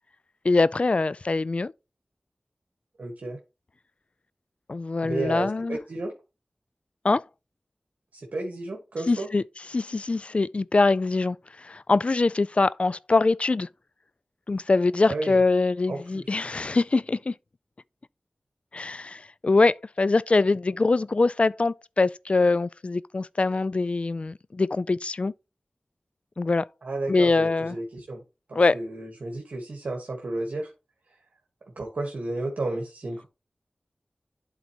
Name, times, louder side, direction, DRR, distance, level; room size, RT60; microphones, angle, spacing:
voice 1, 0.4-1.7 4.7-5.8 7.0-7.2 9.1-9.4 9.7-13.7 14.5-17.3 18.7-25.3 26.4-26.7 27.1-27.8 28.5-28.8, left 3 dB, 50° left, 0.3 m, -23 dB
voice 2, 3.0-3.4 5.0-6.1 8.1-9.3 15.1-15.4 15.9-16.0 26.8-28.2 28.5-30.7 31.8-33.3, right 2 dB, 85° right, 1.5 m, -32 dB
11.5 x 4.0 x 2.9 m
cardioid pair, 40°, 3 cm